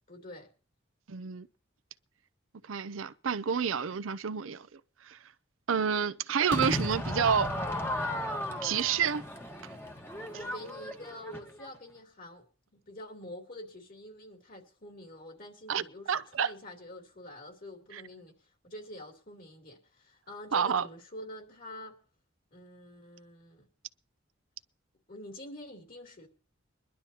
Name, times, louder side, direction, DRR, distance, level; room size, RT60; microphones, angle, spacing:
voice 1, 0.1-0.5 10.3-12.5 12.7-18.4 18.6-21.9 22.5-23.7 25.1-26.3, left 1 dB, 45° left, 3.1 m, -46 dB
voice 2, 1.1-1.5 2.7-4.7 5.1-5.2 5.7-7.5 8.6-9.2 15.7-16.5 17.9-18.0 20.5-20.8, right 7 dB, 85° right, 0.6 m, -29 dB
Crowd / Fireworks, 6.5-11.7, left 1 dB, 10° left, 1.3 m, -35 dB
22.5 x 11.5 x 2.9 m
head